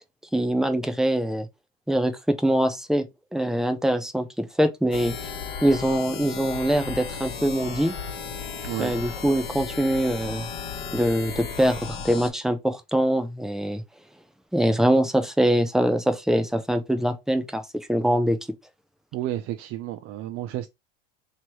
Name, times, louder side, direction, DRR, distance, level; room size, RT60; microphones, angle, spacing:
voice 1, 0.3-1.5 1.9-3.0 3.3-5.1 5.6-7.9 8.8-10.5 10.9-13.8 14.5-17.6 17.9-18.4, right 1 dB, ahead, 0.6 m, -23 dB
sound 1, 4.9-12.3, left 6 dB, 40° left, 1.4 m, -35 dB
voice 2, 19.1-20.7, right 13 dB, 45° right, 0.5 m, -31 dB
3.1 x 3.0 x 4.5 m
supercardioid pair, 115°, 29 cm